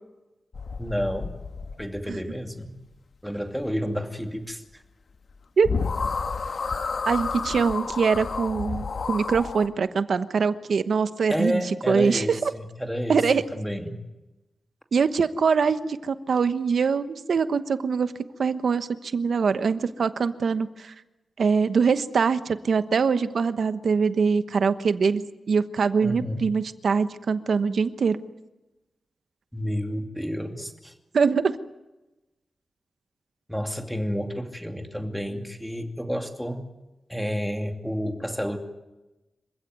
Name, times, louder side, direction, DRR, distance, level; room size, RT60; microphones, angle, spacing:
sound 1, 0.5-2.1 5.3-5.4 5.6-9.7, left 4 dB, 60° left, 1.6 m, -30 dB
voice 1, 0.8-1.4 1.8-2.8 3.2-4.8 11.3-14.0 26.0-26.5 29.5-30.9 33.5-36.7 37.1-38.6, equal, ahead, 5 dB, 2.6 m, -30 dB
voice 2, 7.1-11.6 11.9-12.5 13.1-13.4 14.9-18.1 18.4-20.9 21.4-25.2 25.5-28.2 31.1-31.6, right 5 dB, 70° right, 11 dB, 1.1 m, -23 dB
26.5 x 16.0 x 9.4 m, 1.0 s
wide cardioid pair, 135°, 0 cm